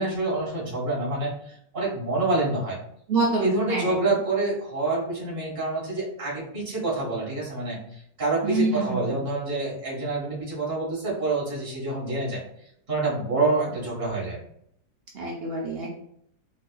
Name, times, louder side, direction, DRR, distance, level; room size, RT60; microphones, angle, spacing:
voice 1, 0.0-2.8 3.4-12.4 12.9-14.4, right 2 dB, 30° right, -7 dB, 1.6 m, -27 dB
voice 2, 3.1-3.9 8.4-9.2 15.1-15.9, right 3 dB, 85° right, -3 dB, 0.5 m, -26 dB
4.1 x 3.0 x 2.3 m, 0.71 s
omnidirectional pair, 2.0 m